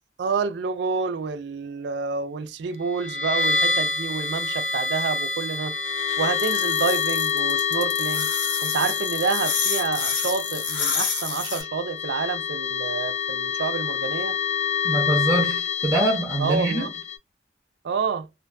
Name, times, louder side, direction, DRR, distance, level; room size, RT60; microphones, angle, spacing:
voice 1, 0.2-5.7 6.2-8.3 8.6-14.4 16.4-16.9 17.8-18.3, right 5 dB, 70° right, 0.4 m, -28 dB
sound 1, 2.9-17.2, left 6 dB, 40° left, 0.6 m, -27 dB
sound 2, 6.4-11.6, left 6 dB, 70° left, 0.8 m, -28 dB
voice 2, 14.8-16.9, right 2 dB, 15° right, 0.5 m, -24 dB
2.4 x 2.2 x 2.4 m
head